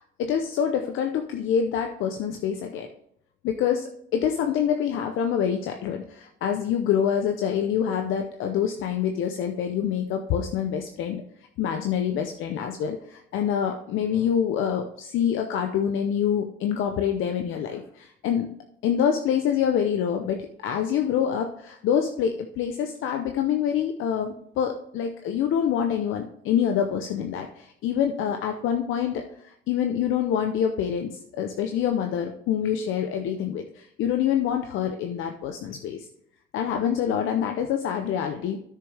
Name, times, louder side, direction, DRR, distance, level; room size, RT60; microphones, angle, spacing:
voice 1, 0.0-2.9 3.4-11.2 11.6-18.5 18.8-36.1 36.5-38.6, left 8 dB, 85° left, 4 dB, 0.7 m, -26 dB
9.5 x 6.7 x 3.4 m, 0.70 s
cardioid pair, 90°, 20 cm